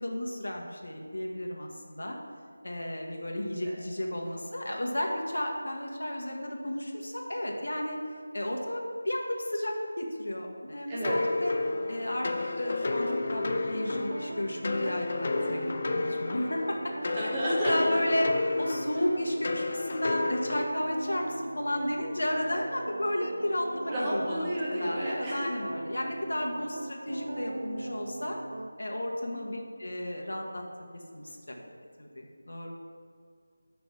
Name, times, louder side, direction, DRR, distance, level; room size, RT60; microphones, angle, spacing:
voice 1, 0.0-2.2 2.6-8.0 8.3-11.5 11.9-12.3 12.6-16.8 17.0-18.3 18.6-28.4 28.8-30.6 31.1-31.6 32.0-32.7, left 1 dB, 75° left, 0 dB, 1.5 m, -33 dB
voice 2, 3.3-3.7 4.2-4.4 10.9-11.2 17.1-18.0 23.9-25.5 29.5-29.6 31.5-31.7, equal, 20° right, -7 dB, 1.7 m, -32 dB
sound 1, 11.0-20.6, left 3 dB, 45° left, 0.5 m, -32 dB
sound 2, 11.6-28.7, right 2 dB, 65° right, 0.4 m, -40 dB
6.2 x 6.0 x 7.0 m, 2.3 s
figure-of-eight pair, 165°, 0 cm